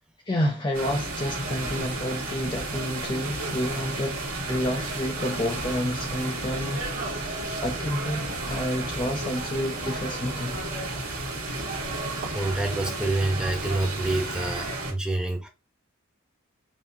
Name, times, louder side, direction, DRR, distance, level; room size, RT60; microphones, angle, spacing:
voice 1, 0.3-4.2 4.5-10.6, left 1 dB, 20° left, 0.5 m, -30 dB
sound 1, 0.7-14.9, right 2 dB, 90° right, 1.9 m, -32 dB
sound 2, 1.6-14.3, right 2 dB, 60° right, 1.6 m, -45 dB
voice 2, 12.3-15.5, right 2 dB, 5° right, 0.9 m, -27 dB
5.7 x 2.7 x 2.7 m
head